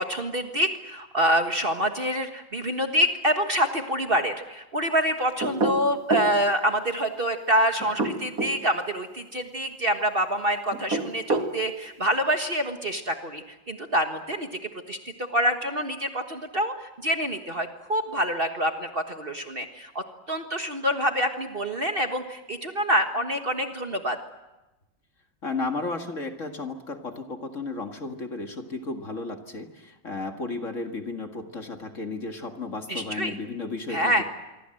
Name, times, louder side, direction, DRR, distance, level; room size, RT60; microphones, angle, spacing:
voice 1, 0.0-14.5 14.9-15.0 15.3-16.7 17.0-24.2 32.9-33.3 33.9-34.2, equal, 35° right, 5 dB, 1.5 m, -26 dB
sound 1, 5.4-6.4 7.8-8.6 10.7-11.5, right 2 dB, 50° right, 2.5 m, -26 dB
voice 2, 25.4-34.2, left 3 dB, 45° left, 5 dB, 2.2 m, -33 dB
26.0 x 24.0 x 7.8 m, 1.0 s
omnidirectional pair, 2.0 m